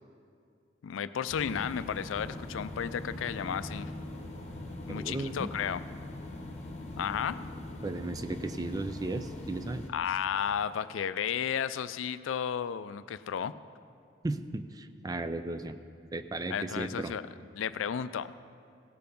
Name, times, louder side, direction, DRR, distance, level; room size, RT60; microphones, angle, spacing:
voice 1, 0.8-3.9 4.9-5.9 7.0-7.4 9.9-13.5 16.5-17.3 17.5-18.3, left 8 dB, 85° left, 15 dB, 0.4 m, -33 dB
sound 1, 1.3-9.9, left 1 dB, 35° left, 1.2 m, -41 dB
voice 2, 4.9-5.5 7.8-9.9 14.2-15.8 16.1-17.1, right 2 dB, 20° right, 10 dB, 0.4 m, -35 dB
16.5 x 6.8 x 5.3 m, 2.4 s
head